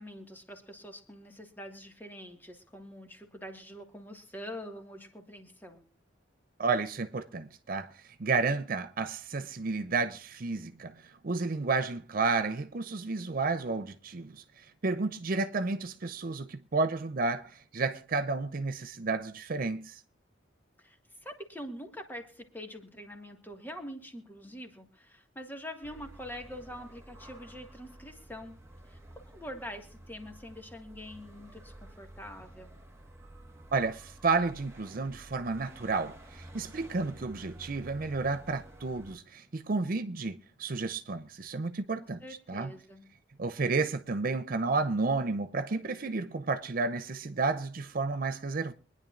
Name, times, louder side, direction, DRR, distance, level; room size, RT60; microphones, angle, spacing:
voice 1, 0.0-5.8 20.8-28.6 28.9-32.7 42.0-43.1, equal, 10° left, 1.7 m, -45 dB
voice 2, 6.6-7.9 8.2-10.9 11.2-14.4 14.8-20.0 33.7-42.2 42.5-42.7 43.4-48.7, right 3 dB, 50° right, 0.6 m, -31 dB
sound 1, 25.8-39.2, right 1 dB, 15° right, 1.5 m, -51 dB
24.5 x 10.5 x 2.5 m
head